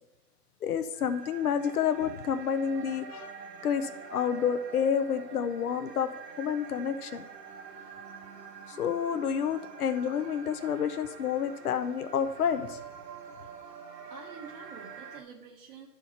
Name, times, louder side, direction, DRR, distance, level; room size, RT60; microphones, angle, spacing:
voice 1, 0.6-3.3 3.6-6.1 6.4-7.2 8.7-12.8, left 7 dB, 65° left, 9 dB, 1.0 m, -29 dB
sound 1, 0.9-15.2, right 5 dB, 85° right, 2.1 m, -46 dB
voice 2, 14.1-15.9, right 6 dB, 35° right, -2 dB, 1.1 m, -48 dB
10.5 x 4.9 x 5.8 m, 0.91 s
hypercardioid pair, 140°, 48 cm